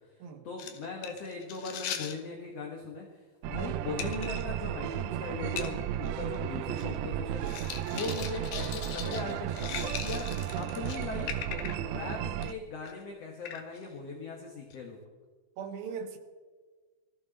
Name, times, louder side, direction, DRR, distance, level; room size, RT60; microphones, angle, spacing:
voice 1, 0.4-10.3 10.6-15.0, left 4 dB, 55° left, 2.0 m, -39 dB
sound 1, 0.6-2.2 4.0-4.4 4.9-5.0 5.6-5.7 6.0-6.1 6.4-7.0 7.4-11.9 12.3-12.5 12.8-13.0 13.5-13.8 14.7-14.8, left 8 dB, 80° left, 3.1 m, -40 dB
sound 2, 3.4-12.5, right 12 dB, 90° right, 2.6 m, -34 dB
voice 2, 15.6-16.2, right 6 dB, 75° right, 3.1 m, -39 dB
20.0 x 14.0 x 4.1 m
omnidirectional pair, 4.3 m